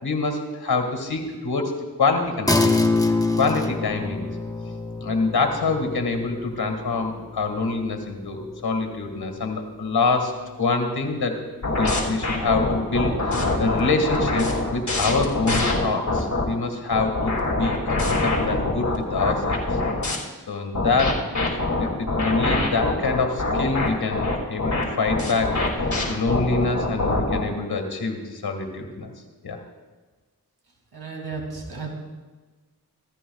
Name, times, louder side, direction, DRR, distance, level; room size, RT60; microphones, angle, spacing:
voice 1, 0.0-1.7 2.0-2.8 3.4-4.3 5.0-11.4 11.8-19.6 20.5-25.6 26.1-29.1 29.4-29.6, left 3 dB, 75° left, 4 dB, 2.0 m, -25 dB
sound 1, 2.5-12.2, left 2 dB, 10° left, 1.0 m, -28 dB
sound 2, 11.6-16.4 16.9-20.2 20.8-27.5, left 2 dB, 50° left, 2.6 m, -24 dB
voice 2, 30.9-31.9, right 4 dB, 85° right, 0 dB, 2.8 m, -33 dB
16.0 x 14.5 x 2.4 m, 1.3 s
cardioid pair, 40°, 38 cm